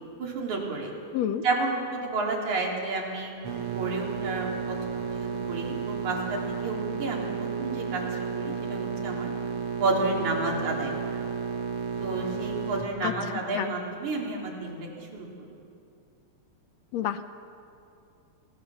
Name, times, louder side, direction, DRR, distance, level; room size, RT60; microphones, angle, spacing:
voice 1, 0.2-0.9 1.4-8.0 8.3-9.3 9.8-11.2 12.0-15.3, right 3 dB, 80° right, -1 dB, 4.7 m, -31 dB
voice 2, 1.1-1.4 13.0-13.1 13.5-13.7 16.9-17.3, left 10 dB, 75° left, 10 dB, 1.8 m, -28 dB
sound 1, 3.4-12.8, right 6 dB, 55° right, 2.3 m, -32 dB
28.5 x 19.5 x 7.0 m, 2.6 s
omnidirectional pair, 3.3 m